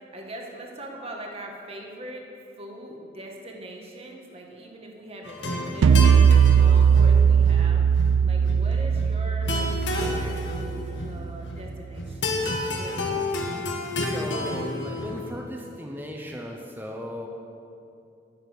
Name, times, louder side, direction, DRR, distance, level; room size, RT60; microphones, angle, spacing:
voice 1, 0.1-2.2 2.6-7.8 8.2-13.1 13.6-13.7, right 1 dB, 30° right, 0 dB, 1.7 m, -41 dB
sound 1, 5.2-15.3, left 2 dB, 65° left, 1.7 m, -31 dB
sound 2, 5.8-11.2, right 7 dB, 85° right, 0.3 m, -19 dB
voice 2, 13.9-17.3, equal, 10° right, 0 dB, 0.9 m, -36 dB
11.5 x 7.4 x 9.7 m, 2.6 s
head